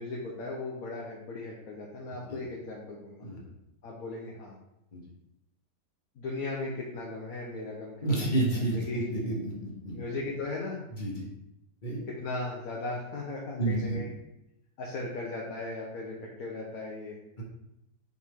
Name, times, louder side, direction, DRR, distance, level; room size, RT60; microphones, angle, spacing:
voice 1, 0.0-3.3 3.8-4.5 6.2-8.3 8.5-9.1 9.9-10.8 12.1-14.1 14.8-17.2, left 2 dB, 60° left, -3 dB, 1.4 m, -37 dB
voice 2, 8.0-10.0 11.0-11.2 11.8-12.0 13.6-14.0 17.4-17.5, right 2 dB, 30° left, -3 dB, 1.3 m, -30 dB
6.5 x 4.5 x 3.6 m, 0.86 s
omnidirectional pair, 1.8 m